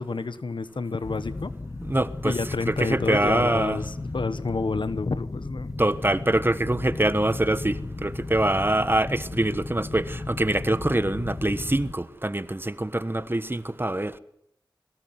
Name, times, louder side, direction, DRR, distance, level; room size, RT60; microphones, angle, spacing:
voice 1, 0.0-1.5 2.2-5.7, left 4 dB, 80° left, 1.2 m, -29 dB
sound 1, 1.0-11.9, left 2 dB, 45° left, 1.3 m, -35 dB
voice 2, 1.9-3.8 5.8-14.2, right 1 dB, 25° right, 1.2 m, -24 dB
22.0 x 17.5 x 9.5 m
wide cardioid pair, 50°, 8 cm